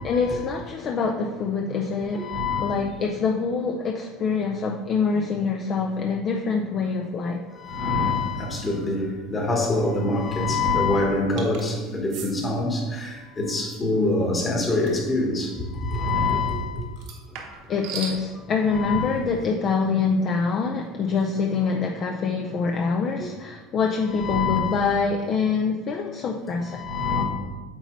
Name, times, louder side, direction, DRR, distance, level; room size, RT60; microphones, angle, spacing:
voice 1, 0.0-2.3 2.6-7.4 17.7-26.9, left 5 dB, 40° left, 2 dB, 0.4 m, -25 dB
voice 2, 2.1-2.7 7.5-16.9 17.4-17.6 18.7-19.1 23.2-23.3 24.1-24.8 26.7-27.2, left 2 dB, 20° left, 0 dB, 1.2 m, -25 dB
sound 1, 11.4-11.7 12.1-12.3 14.9-15.1 17.0-18.2, right 5 dB, 65° right, 1.1 m, -36 dB
8.1 x 4.0 x 3.1 m, 1.3 s
supercardioid pair, 130°, 0 cm